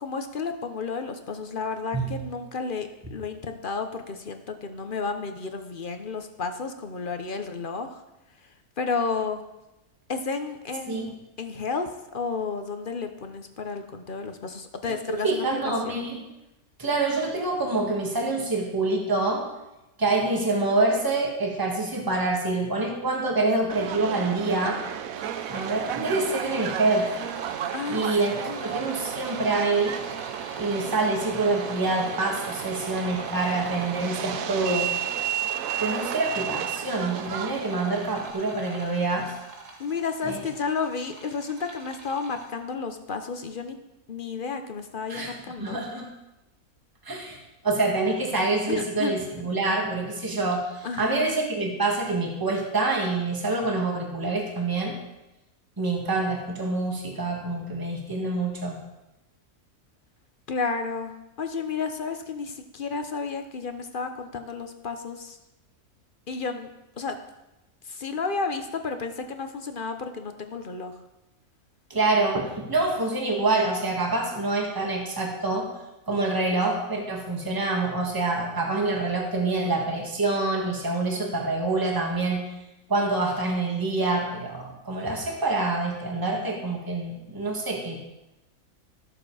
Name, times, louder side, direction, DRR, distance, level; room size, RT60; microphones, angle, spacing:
voice 1, 0.0-7.9 8.8-9.4 10.1-16.0 27.7-28.0 28.5-28.8 39.8-43.8 44.1-45.8 48.7-49.2 50.8-51.3 60.5-61.1 61.4-65.4 66.3-66.7 67.0-67.2 67.9-70.9 81.3-81.6, left 4 dB, 45° left, 7 dB, 0.8 m, -32 dB
voice 2, 15.2-16.2 16.8-19.5 20.0-24.8 25.5-27.1 27.9-30.0 30.6-34.9 35.8-39.3 40.2-40.4 45.1-46.1 47.0-47.4 47.6-55.0 55.8-58.8 71.9-75.7 76.1-82.4 82.9-88.0, right 2 dB, 15° right, 0 dB, 1.7 m, -26 dB
Subway metro underground, 23.7-38.3, right 10 dB, 75° right, 1.0 m, -33 dB
sound 1, 25.1-42.5, right 3 dB, 90° right, 2.2 m, -43 dB
13.5 x 7.0 x 4.9 m, 0.95 s
omnidirectional pair, 1.6 m